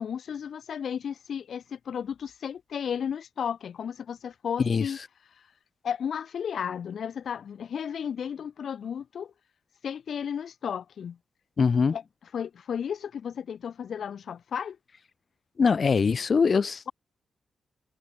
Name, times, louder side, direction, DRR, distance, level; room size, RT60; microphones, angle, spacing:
voice 1, 0.0-5.0 5.8-9.3 9.8-11.2 11.9-12.0 12.3-14.8, left 8 dB, 60° left, 4.4 m, -33 dB
voice 2, 11.6-12.0 15.6-16.9, left 5 dB, 40° left, 2.6 m, -22 dB
wide cardioid pair, 160°, 0 cm